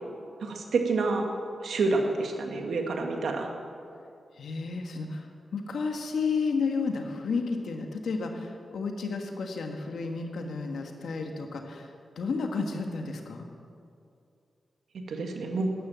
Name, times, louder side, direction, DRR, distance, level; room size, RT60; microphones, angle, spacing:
voice 1, 0.4-1.3 1.6-3.5 15.1-15.7, right 3 dB, 80° right, 3 dB, 1.8 m, -28 dB
voice 2, 4.4-5.3 5.5-11.9 12.2-13.5, left 4 dB, 80° left, 4 dB, 1.6 m, -32 dB
13.0 x 11.0 x 7.5 m, 2.5 s
cardioid pair, 55°, 0 cm